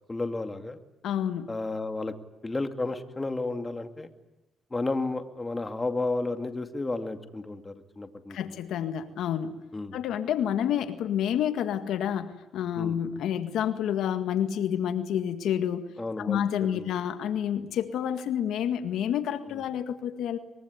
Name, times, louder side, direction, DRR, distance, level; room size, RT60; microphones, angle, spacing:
voice 1, 0.1-0.8 1.5-2.1 2.4-4.1 4.7-8.4 9.7-10.0 12.7-13.0 16.0-16.9 19.5-19.6, left 2 dB, 20° left, 7 dB, 2.4 m, -32 dB
voice 2, 1.0-1.5 8.3-9.6 9.9-15.9 16.2-20.4, left 9 dB, 80° left, 9 dB, 1.9 m, -29 dB
24.0 x 23.0 x 9.7 m, 0.94 s
cardioid pair, 90°, 0 cm